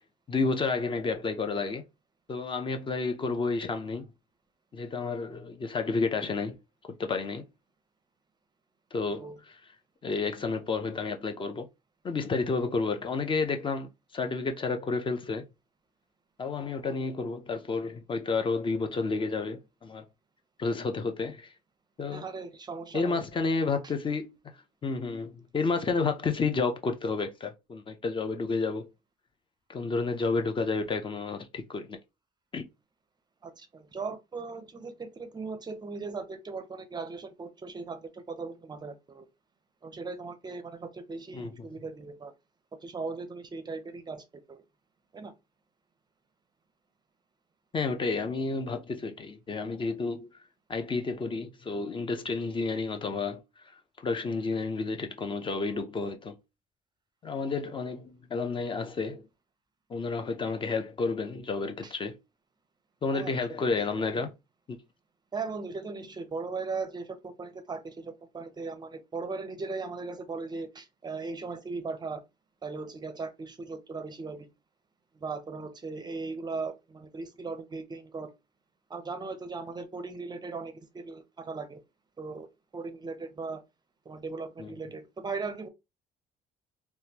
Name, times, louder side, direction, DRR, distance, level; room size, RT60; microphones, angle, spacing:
voice 1, 0.3-1.8 2.3-4.1 4.7-6.6 7.0-7.5 8.9-9.6 10.0-11.7 12.0-15.5 16.4-20.0 20.6-21.5 22.0-22.2 22.9-24.5 24.8-28.9 29.7-32.0 32.5-32.7 41.3-41.7 47.7-50.3 50.7-53.4 54.0-56.4 57.2-59.2 59.9-62.2 63.0-64.3 64.7-64.8 84.6-84.7, left 4 dB, 30° left, 0.5 m, -31 dB
voice 2, 22.1-23.2 33.4-39.3 39.8-42.3 42.8-44.6 45.1-45.3 61.8-61.9 63.1-63.4 65.3-72.2 72.6-74.5 75.1-78.3 78.9-81.8 82.2-82.5 82.7-83.6 84.1-85.7, right 4 dB, 25° right, 0.5 m, -38 dB
3.4 x 2.2 x 2.8 m
cardioid pair, 110°, 17 cm